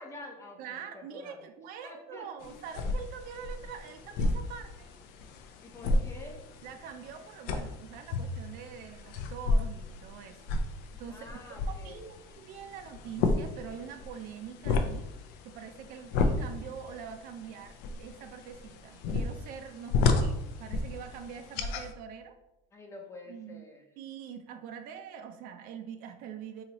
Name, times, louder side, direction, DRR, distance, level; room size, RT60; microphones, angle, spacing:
voice 1, 0.0-1.5 1.8-2.6 5.6-6.4 11.1-12.1 22.7-23.9, left 2 dB, 15° left, 1 dB, 0.6 m, -48 dB
voice 2, 0.6-4.9 6.6-10.6 11.0-11.4 11.7-15.1 15.4-22.4 23.3-23.7 24.0-26.6, right 7 dB, 60° right, 7 dB, 0.4 m, -44 dB
sound 1, 2.4-21.9, left 3 dB, 65° left, 0.5 m, -33 dB
3.0 x 2.8 x 4.0 m, 0.91 s
cardioid pair, 140°, 17 cm